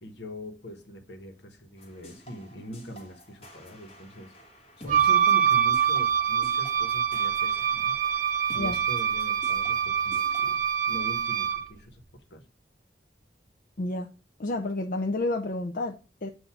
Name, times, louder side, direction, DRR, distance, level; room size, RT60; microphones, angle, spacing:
voice 1, 0.0-4.3 4.8-8.0 8.5-12.0 12.3-12.4, equal, 75° left, 1.3 m, -42 dB
sound 1, 1.8-10.6, equal, 35° left, 1.6 m, -50 dB
Wind instrument woodwind instrument, 4.9-11.7, right 8 dB, 45° right, 0.7 m, -25 dB
voice 2, 13.8-14.1 14.4-16.3, left 2 dB, 50° left, 0.5 m, -30 dB
7.9 x 2.7 x 5.8 m
head